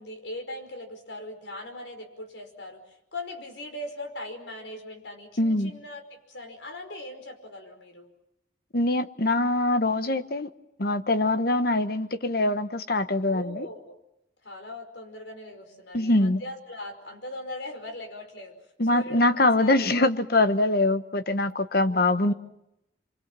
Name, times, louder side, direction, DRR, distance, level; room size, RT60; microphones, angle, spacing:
voice 1, 0.0-8.1 11.1-11.4 13.2-14.0 14.4-18.6 18.9-20.0 20.6-20.7 21.9-22.4, left 1 dB, 75° left, 5 dB, 5.4 m, -40 dB
voice 2, 5.4-5.7 8.7-10.5 10.8-13.7 15.9-16.4 18.8-22.3, left 2 dB, 50° left, 11 dB, 1.1 m, -23 dB
29.0 x 24.0 x 7.6 m, 0.86 s
head